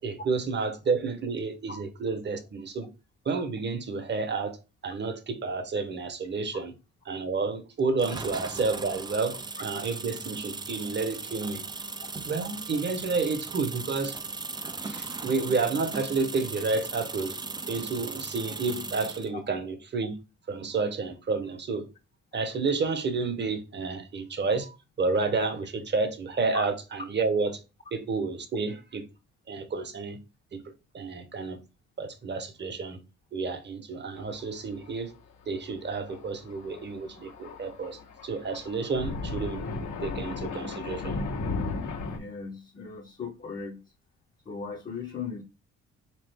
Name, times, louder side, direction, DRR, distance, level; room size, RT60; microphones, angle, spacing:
voice 1, 0.0-2.9 3.2-6.7 7.1-11.6 12.2-14.2 14.8-17.4 17.7-20.2 20.5-21.9 22.3-27.6 27.9-29.1 29.5-30.2 30.5-30.6 30.9-31.6 32.0-33.0 33.3-35.1 35.5-41.2, right 4 dB, 35° right, 0.8 m, -30 dB
sound 1, 8.0-19.3, right 4 dB, 15° right, 0.3 m, -38 dB
Thunder, 34.2-34.6 34.8-34.9 35.9-42.2, left 3 dB, 90° left, 1.3 m, -35 dB
voice 2, 42.2-43.8 44.5-45.4, left 5 dB, 30° left, 0.6 m, -37 dB
3.7 x 3.0 x 3.4 m
cardioid pair, 90°, 30 cm